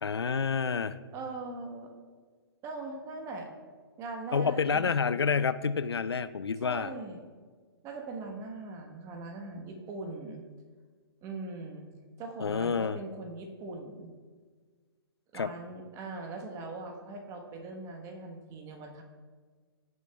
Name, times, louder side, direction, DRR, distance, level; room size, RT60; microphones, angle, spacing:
voice 1, 0.0-1.0 4.3-6.9 12.4-13.0 15.3-15.5, left 5 dB, 90° left, 15 dB, 0.4 m, -28 dB
voice 2, 1.1-1.9 2.6-3.5 4.0-4.9 6.6-7.3 7.8-10.4 11.2-11.9 12.2-14.1 15.3-19.0, right 3 dB, 25° right, 4 dB, 1.2 m, -41 dB
15.5 x 6.6 x 2.3 m, 1.5 s
figure-of-eight pair, 125°, 13 cm